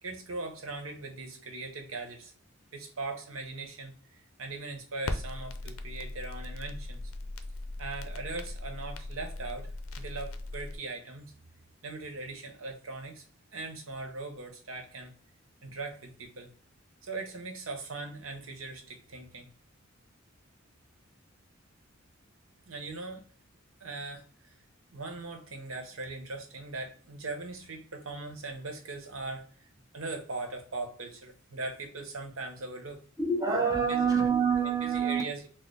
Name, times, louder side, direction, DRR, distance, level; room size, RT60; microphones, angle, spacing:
voice 1, 0.0-2.3 2.7-7.0 7.8-11.3 11.8-13.2 13.5-15.1 15.6-16.5 17.0-19.5 22.7-23.2 23.8-24.5 24.9-29.7 29.9-33.0 33.7-34.1 34.6-35.5, right 3 dB, 80° right, 4 dB, 0.9 m, -40 dB
Crackle, 5.0-10.8, left 2 dB, 90° left, 0.5 m, -39 dB
voice 2, 33.2-35.2, right 5 dB, 20° right, -1 dB, 0.7 m, -26 dB
4.3 x 2.0 x 3.1 m, 0.43 s
head